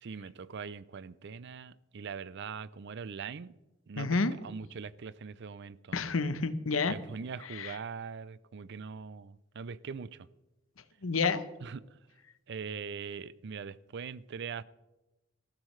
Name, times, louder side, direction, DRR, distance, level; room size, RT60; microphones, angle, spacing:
voice 1, 0.0-3.5 3.9-6.0 6.9-10.3 11.6-11.8 12.5-14.6, right 6 dB, 60° right, 0.5 m, -42 dB
voice 2, 4.0-4.3 5.9-7.0 7.5-7.8 11.0-11.4, left 4 dB, 80° left, 0.9 m, -29 dB
19.5 x 14.5 x 3.2 m
head